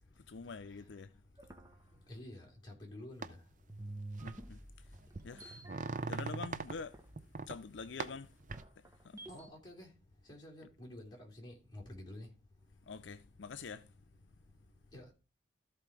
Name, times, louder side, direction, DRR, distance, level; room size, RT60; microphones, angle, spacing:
voice 1, 0.2-1.1 4.2-4.9 5.2-5.6 6.1-7.0 7.5-8.3 8.8-9.3 12.9-13.9, left 5 dB, 80° left, 0.5 m, -46 dB
sound 1, 1.4-3.3 3.7-9.5, right 2 dB, 15° right, 1.1 m, -50 dB
voice 2, 2.1-3.4 9.3-9.9 10.3-12.3 14.9-15.1, left 1 dB, 25° left, 3.4 m, -50 dB
sound 2, 3.2-3.3 4.2-4.4 4.9-6.7 7.2-7.6 8.0-8.6, right 4 dB, 45° right, 0.7 m, -41 dB
13.5 x 4.6 x 4.8 m
head